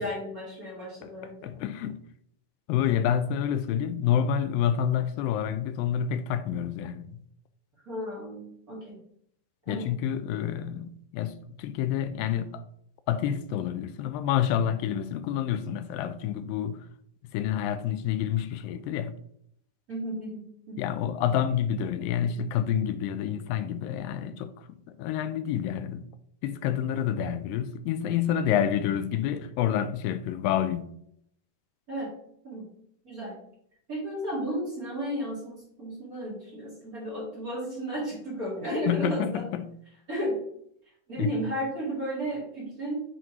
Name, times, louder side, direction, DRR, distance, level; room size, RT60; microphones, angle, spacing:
voice 1, 0.0-1.5 7.8-9.0 9.7-9.9 19.9-20.9 31.9-32.1 32.4-32.7 33.0-33.4 33.9-39.4 40.1-40.4 41.1-43.0, right 1 dB, 30° right, 2.1 m, -33 dB
voice 2, 1.4-2.0 2.7-7.2 9.7-12.6 13.1-16.9 17.3-19.2 20.8-26.1 26.4-30.9 38.7-39.7 41.2-41.3, left 9 dB, 85° left, 2.2 m, -28 dB
7.7 x 3.9 x 4.4 m
omnidirectional pair, 3.9 m